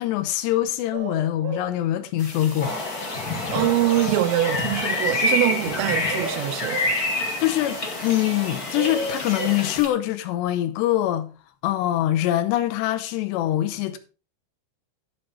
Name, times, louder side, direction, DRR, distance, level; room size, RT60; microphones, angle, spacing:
voice 1, 0.0-2.8 7.4-11.3 11.6-14.0, left 13 dB, 85° left, 2.5 m, -24 dB
sound 1, 0.9-1.7 3.5-4.7 5.8-7.0 8.2-9.6, right 4 dB, 60° right, 2.4 m, -34 dB
sound 2, 2.2-9.9, left 2 dB, 15° left, 1.4 m, -39 dB
sound 3, 2.6-9.8, left 2 dB, 65° left, 0.9 m, -27 dB
voice 2, 3.5-6.8, right 14 dB, 80° right, 3.3 m, -23 dB
12.0 x 6.4 x 4.5 m
omnidirectional pair, 5.9 m